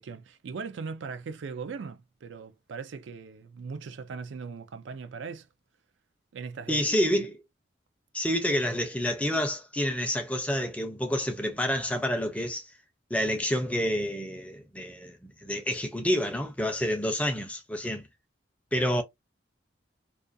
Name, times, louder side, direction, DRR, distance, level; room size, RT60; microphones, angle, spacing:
voice 1, 0.0-5.5 6.3-6.9, right 5 dB, 85° right, 0.4 m, -39 dB
voice 2, 6.7-7.4 8.1-12.7 13.1-18.1 18.7-19.0, equal, 5° left, 0.4 m, -28 dB
2.4 x 2.3 x 2.5 m
head